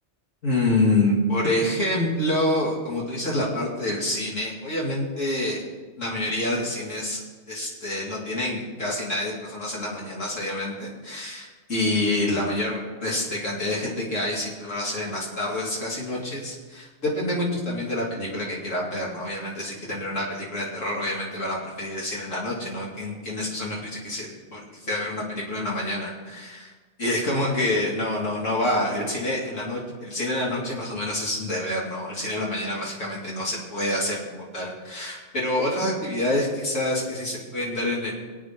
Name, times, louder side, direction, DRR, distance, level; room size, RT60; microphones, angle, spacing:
voice 1, 0.4-5.6 6.0-7.2 7.5-26.7 27.0-38.1, left 1 dB, 85° left, -5 dB, 3.3 m, -27 dB
25.5 x 8.7 x 3.8 m, 1.4 s
omnidirectional pair, 1.3 m